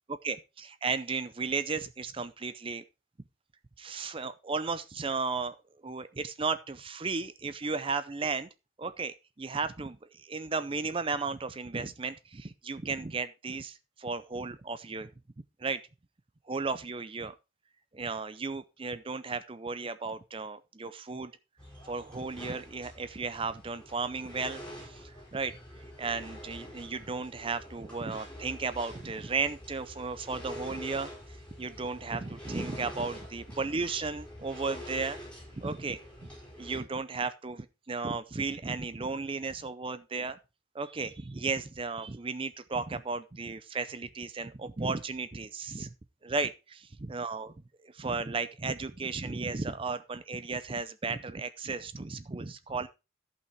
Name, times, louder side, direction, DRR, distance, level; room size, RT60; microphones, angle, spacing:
voice 1, 0.2-2.8 3.8-5.6 5.8-8.5 8.8-15.1 15.6-15.8 16.5-17.3 17.9-21.3 21.8-25.6 26.0-31.1 31.6-35.2 35.5-36.0 36.6-40.4 40.7-45.9 46.2-47.5 47.8-52.9, right 4 dB, 25° right, 0.5 m, -34 dB
sound 1, 21.6-36.8, equal, 5° left, 5.4 m, -46 dB
14.0 x 5.7 x 4.5 m
head